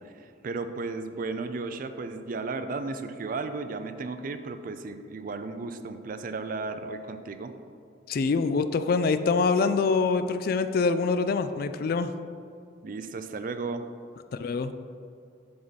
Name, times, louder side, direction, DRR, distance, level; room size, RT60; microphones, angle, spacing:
voice 1, 0.2-7.5 12.8-13.8, right 3 dB, 50° right, 9 dB, 0.4 m, -34 dB
voice 2, 8.1-12.1 14.4-14.7, left 4 dB, 55° left, 11 dB, 0.3 m, -25 dB
7.7 x 5.6 x 4.0 m, 2.5 s
head